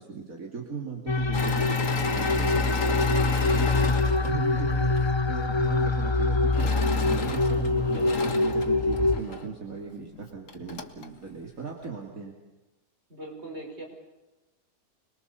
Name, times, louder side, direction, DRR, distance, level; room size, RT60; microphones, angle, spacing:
voice 1, 0.0-3.1 3.5-4.9 5.3-12.3, right 5 dB, 70° right, 0 dB, 3.0 m, -37 dB
sound 1, 1.1-9.2, left 3 dB, 25° left, 0.7 m, -24 dB
Engine / Mechanisms, 1.3-5.1 6.5-9.5 10.1-10.2 10.5-11.1, left 4 dB, 60° left, 2.0 m, -33 dB
voice 2, 7.9-8.4 13.1-13.8, right 1 dB, 45° right, 0 dB, 6.6 m, -40 dB
26.0 x 21.5 x 7.0 m, 1.0 s
omnidirectional pair, 1.5 m